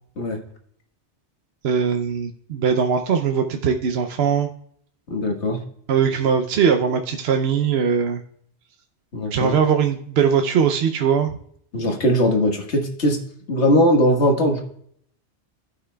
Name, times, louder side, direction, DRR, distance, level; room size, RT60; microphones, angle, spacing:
voice 1, 1.6-4.5 5.9-8.2 9.3-11.3, right 7 dB, 70° right, 5 dB, 0.9 m, -20 dB
voice 2, 5.1-5.6 9.1-9.6 11.7-13.2 13.5-14.6, equal, 80° left, 2 dB, 1.8 m, -19 dB
14.5 x 5.9 x 2.2 m, 0.64 s
omnidirectional pair, 1.1 m